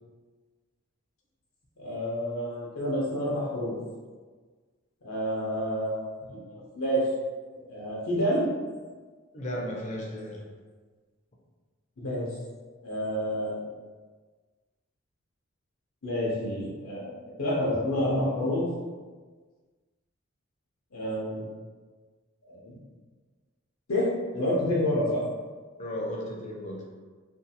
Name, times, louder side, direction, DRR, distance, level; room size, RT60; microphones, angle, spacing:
voice 1, 1.8-3.7 5.0-7.0 7.7-8.5 12.0-12.3 12.8-13.6 16.0-18.7 20.9-21.4 22.5-22.7 23.9-25.2, equal, 85° left, -5 dB, 0.6 m, -29 dB
voice 2, 9.3-10.4 25.8-26.8, equal, 35° left, -1 dB, 0.5 m, -35 dB
2.6 x 2.3 x 2.7 m, 1.4 s
head